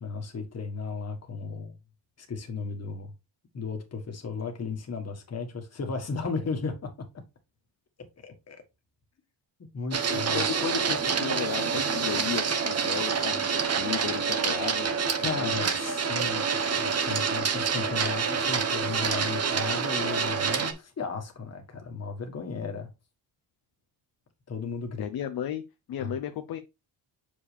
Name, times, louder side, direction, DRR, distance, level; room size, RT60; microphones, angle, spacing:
voice 1, 0.0-1.7 2.2-3.1 3.5-6.9 8.2-8.6 9.7-10.5 15.2-22.9 24.5-25.0 26.0-26.1, left 4 dB, 35° left, 1.6 m, -35 dB
Printer, 9.9-20.7, right 6 dB, 35° right, 1.1 m, -27 dB
voice 2, 10.1-14.9 15.3-15.5 25.0-25.6 25.9-26.6, left 10 dB, 50° left, 0.8 m, -34 dB
7.0 x 5.2 x 3.3 m
cardioid pair, 120°, 45 cm